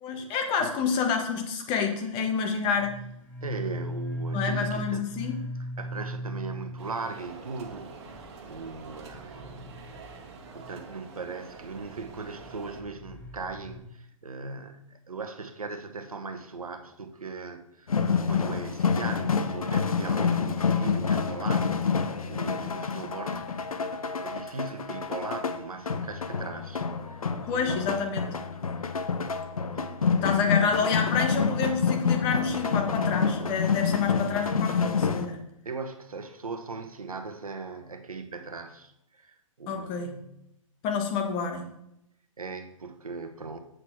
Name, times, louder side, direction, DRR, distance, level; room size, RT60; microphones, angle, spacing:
voice 1, 0.0-3.0 4.3-5.4 26.5-26.7 27.5-28.3 30.2-35.4 39.7-40.1 40.8-41.7, left 5 dB, 30° left, 4 dB, 1.4 m, -28 dB
voice 2, 0.6-0.9 3.4-5.1 5.8-8.2 8.5-9.9 10.5-27.2 27.5-27.9 29.2-29.4 29.7-31.0 35.6-40.3 42.4-43.6, right 4 dB, 90° right, 7 dB, 1.0 m, -39 dB
sound 1, 2.7-10.9 11.5-13.8, equal, 10° left, 1.2 m, -38 dB
sound 2, 6.8-12.8, right 5 dB, 50° right, 1.5 m, -46 dB
sound 3, 17.9-35.2, left 5 dB, 85° left, 0.8 m, -28 dB
7.8 x 6.2 x 4.6 m, 0.80 s
hypercardioid pair, 130°, 18 cm